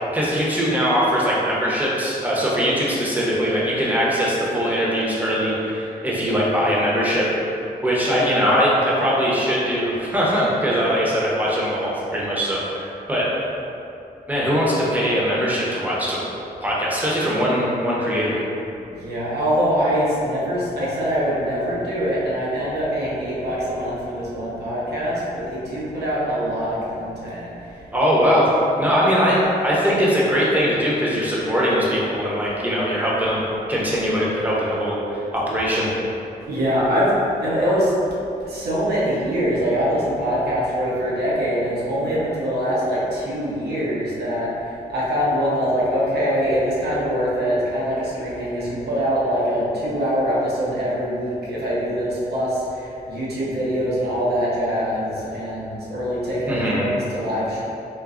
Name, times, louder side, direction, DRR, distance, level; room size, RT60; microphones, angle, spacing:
voice 1, 0.1-7.5 7.8-13.5 14.3-16.2 16.6-18.4 27.9-28.5 28.8-35.9 56.5-56.9, equal, 10° right, -6 dB, 0.8 m, -21 dB
voice 2, 18.9-28.1 33.1-33.3 36.5-37.9 38.4-57.6, equal, 75° right, -7 dB, 0.9 m, -23 dB
3.6 x 2.6 x 2.4 m, 2.8 s
cardioid pair, 70°, 17 cm